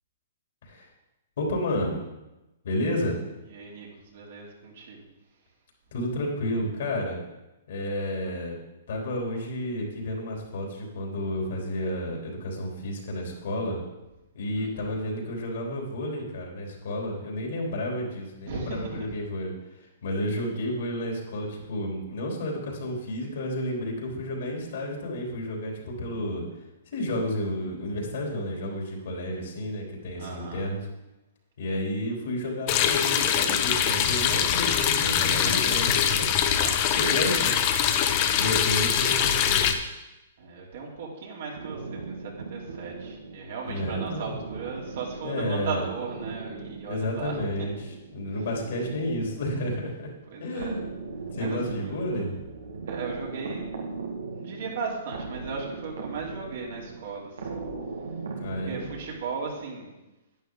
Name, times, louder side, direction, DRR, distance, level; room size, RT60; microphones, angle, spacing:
voice 1, 1.4-2.0 2.6-3.2 5.9-7.2 7.7-8.6 8.9-13.8 14.3-19.5 20.0-26.5 26.9-30.8 31.6-36.6 36.9-37.5 38.4-39.8 43.7-44.4 45.2-45.8 46.8-50.1 50.4-50.8 51.3-52.4 58.4-58.8, left 1 dB, 65° left, -1 dB, 3.6 m, -31 dB
voice 2, 3.5-5.0 14.6-14.9 18.4-19.2 30.2-30.6 35.2-35.9 36.6-37.6 40.4-47.4 47.7-47.8 50.3-50.8 51.4-52.4 52.9-53.6 54.3-57.7 58.5-60.0, right 4 dB, 65° right, -2 dB, 3.1 m, -37 dB
sound 1, 32.7-39.7, left 9 dB, 40° left, 0.9 m, -23 dB
sound 2, 41.5-59.6, right 4 dB, 85° right, 1.7 m, -38 dB
11.0 x 9.6 x 3.9 m, 0.99 s
hypercardioid pair, 130°, 0 cm